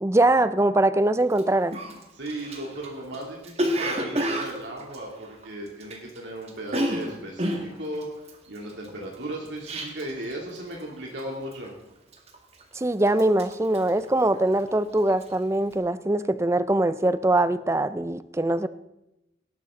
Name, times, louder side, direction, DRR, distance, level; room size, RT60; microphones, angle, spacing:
voice 1, 0.0-1.8 12.8-18.7, right 1 dB, 15° right, 15 dB, 0.4 m, -22 dB
Cough, 1.3-1.4 1.7-6.2 6.4-10.3 10.5-10.9 11.2-11.7 12.1-12.7 13.0-14.7 15.0-15.3, equal, 35° right, 1.9 m, -30 dB
voice 2, 2.1-8.1 8.5-11.7, right 1 dB, 85° right, -2 dB, 2.6 m, -36 dB
18.0 x 12.0 x 3.7 m, 0.90 s
head